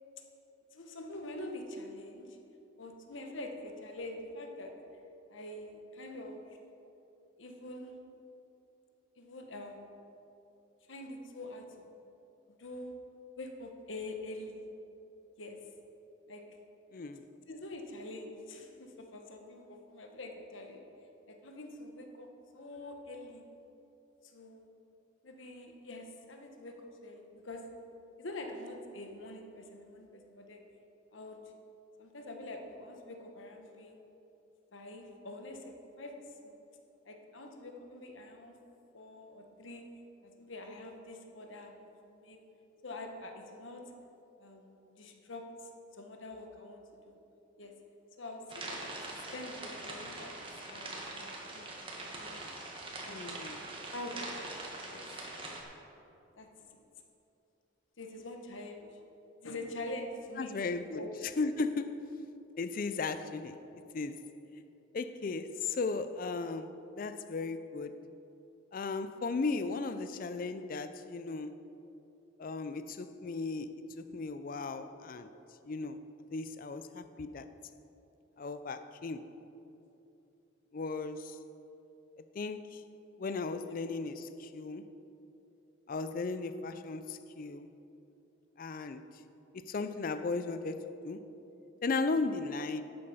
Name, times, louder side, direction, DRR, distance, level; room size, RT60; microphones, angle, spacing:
voice 1, 0.7-2.4 2.8-4.7 5.3-6.6 7.4-8.0 9.2-9.9 10.9-12.1 12.6-13.0 13.4-14.6 15.4-15.6 16.3-16.4 17.5-20.8 21.3-23.5 24.2-24.7 25.2-27.7 28.2-30.6 31.1-31.4 32.0-34.0 34.7-36.6 37.0-38.6 38.9-39.9 40.2-42.4 42.8-43.9 44.4-47.2 47.6-47.7 48.2-48.8 49.1-50.3 50.7-51.7 52.1-52.4 53.0-54.4 54.9-55.2 56.4-56.8 58.0-59.0 59.4-61.1 67.7-67.8 70.4-70.5 83.7-83.9 90.5-90.6, left 1 dB, 75° left, 3 dB, 1.2 m, -45 dB
voice 2, 16.9-17.3 53.1-53.6 60.4-61.0 61.4-62.0 62.6-63.6 63.9-64.2 64.9-67.9 68.7-71.6 72.4-75.3 75.7-76.0 76.3-77.5 78.4-79.2 80.7-81.4 82.4-82.8 83.2-84.8 85.9-87.7 88.6-89.0 89.5-91.2 91.8-92.8, left 3 dB, 45° left, 11 dB, 0.4 m, -36 dB
sound 1, 48.5-55.6, right 2 dB, 25° right, 1.4 m, -43 dB
11.5 x 8.6 x 5.4 m, 2.9 s
head